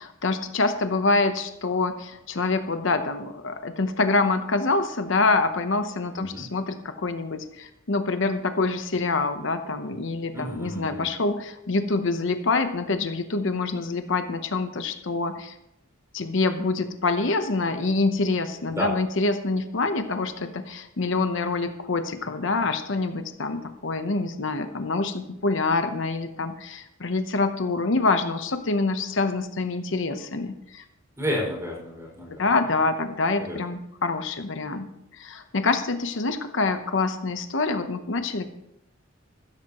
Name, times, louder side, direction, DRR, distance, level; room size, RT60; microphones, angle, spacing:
voice 1, 0.0-15.6 16.1-30.8 32.4-34.9 35.1-38.4, left 3 dB, 65° left, 8 dB, 0.9 m, -26 dB
voice 2, 10.3-11.1 18.7-18.9 31.2-32.4 33.4-33.6, equal, 15° right, -3 dB, 5.5 m, -31 dB
15.0 x 13.5 x 3.0 m, 0.81 s
head